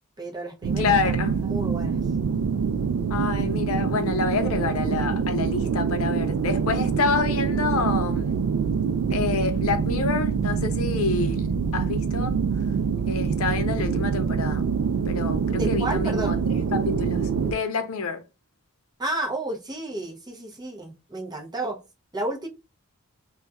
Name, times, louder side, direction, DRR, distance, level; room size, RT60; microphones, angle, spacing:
voice 1, 0.2-1.1 1.4-2.0 15.5-16.4 19.0-21.8 22.1-22.5, right 2 dB, 20° right, 0.6 m, -31 dB
sound 1, 0.6-17.5, right 6 dB, 75° right, 0.3 m, -25 dB
voice 2, 0.8-1.5 3.1-8.4 9.1-12.4 13.1-14.6 15.1-16.4 16.7-18.2, left 5 dB, 65° left, 0.5 m, -28 dB
2.3 x 2.2 x 3.9 m
head